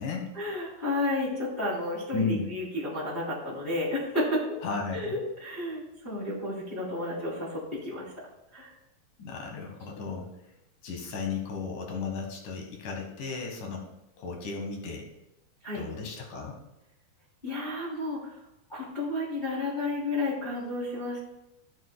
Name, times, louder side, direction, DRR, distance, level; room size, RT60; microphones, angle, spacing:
voice 1, 0.3-4.5 4.9-8.1 8.5-8.7 15.6-15.8 17.4-18.4 18.7-21.2, left 2 dB, 15° left, -8 dB, 2.6 m, -32 dB
voice 2, 2.1-2.5 4.6-5.2 9.2-10.3 10.8-13.8 14.2-15.1 15.7-16.6, left 4 dB, 60° left, 2 dB, 2.6 m, -34 dB
15.5 x 7.1 x 2.2 m, 0.92 s
omnidirectional pair, 4.9 m